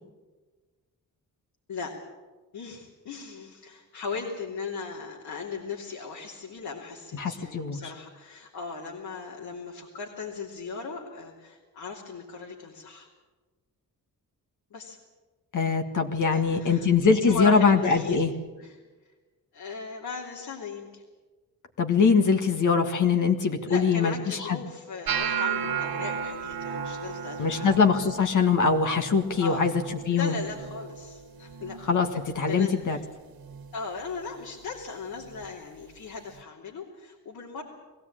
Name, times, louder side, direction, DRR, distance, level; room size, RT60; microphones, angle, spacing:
voice 1, 2.5-13.1 14.7-15.0 16.3-16.9 17.2-18.2 18.6-18.8 19.5-21.0 23.6-27.7 29.4-29.7 30.1-31.8 32.5-33.0 33.7-37.6, left 4 dB, 75° left, -2 dB, 3.0 m, -37 dB
voice 2, 7.1-7.8 15.5-18.3 21.8-24.6 27.4-30.4 31.8-33.0, left 5 dB, 55° left, 4 dB, 1.8 m, -23 dB
sound 1, 25.1-31.2 31.4-31.9 32.3-32.8 33.5-33.7 35.4-35.5, right 7 dB, 75° right, 1.5 m, -34 dB
21.5 x 16.0 x 8.9 m, 1.3 s
wide cardioid pair, 125°, 36 cm